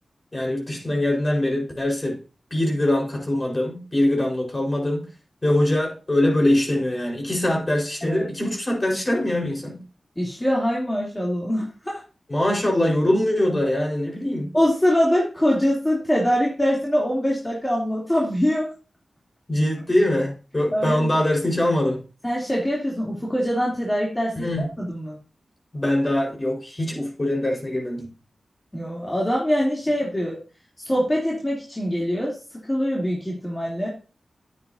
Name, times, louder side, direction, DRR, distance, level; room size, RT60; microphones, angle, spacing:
voice 1, 0.3-2.2 2.5-5.0 5.4-9.8 12.3-14.5 19.5-22.0 24.4-24.7 25.7-28.1, left 1 dB, 35° left, -1 dB, 4.6 m, -23 dB
voice 2, 10.2-12.0 14.5-18.7 20.7-21.1 22.2-25.2 28.7-30.4 30.8-32.3 32.6-33.9, equal, 15° left, -4 dB, 3.1 m, -23 dB
9.8 x 9.4 x 2.8 m, 0.34 s
cardioid pair, 50°, 0 cm